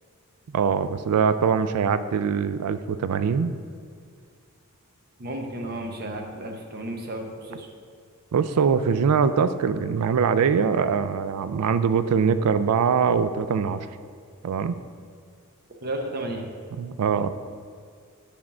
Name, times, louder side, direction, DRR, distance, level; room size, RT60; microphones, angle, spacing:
voice 1, 0.5-3.5 8.3-13.9 14.4-14.8 16.8-17.3, right 6 dB, 85° right, 12 dB, 0.4 m, -23 dB
voice 2, 5.2-7.7 15.8-16.5, right 1 dB, 45° right, 2 dB, 0.9 m, -33 dB
7.4 x 3.5 x 6.0 m, 2.2 s
head